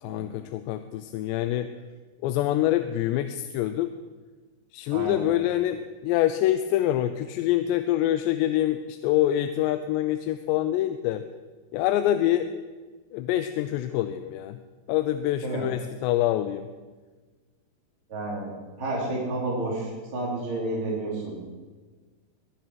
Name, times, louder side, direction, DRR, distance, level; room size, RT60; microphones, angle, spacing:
voice 1, 0.0-1.7 2.2-3.9 4.7-11.2 11.7-12.5 13.1-14.6 14.9-16.7, left 13 dB, 90° left, 10 dB, 2.8 m, -25 dB
voice 2, 4.9-5.2 15.4-15.6 18.1-21.5, right 2 dB, 35° right, -6 dB, 3.7 m, -31 dB
21.0 x 11.0 x 4.7 m, 1.3 s
omnidirectional pair, 4.9 m